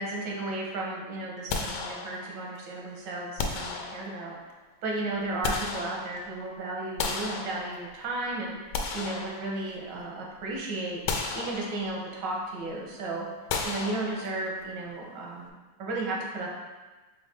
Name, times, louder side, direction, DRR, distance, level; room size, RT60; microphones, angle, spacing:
voice 1, 0.0-4.4 4.8-8.5 8.9-11.0 11.3-13.3 13.6-16.5, right 2 dB, 85° right, -2 dB, 1.5 m, -34 dB
sound 1, 1.5-2.5 3.4-4.4 5.1-6.4 7.0-8.1 8.5-10.0 10.4-10.5 11.1-12.1 13.5-14.6, left 4 dB, 85° left, 1.2 m, -34 dB
4.6 x 2.7 x 3.4 m, 1.2 s
omnidirectional pair, 1.8 m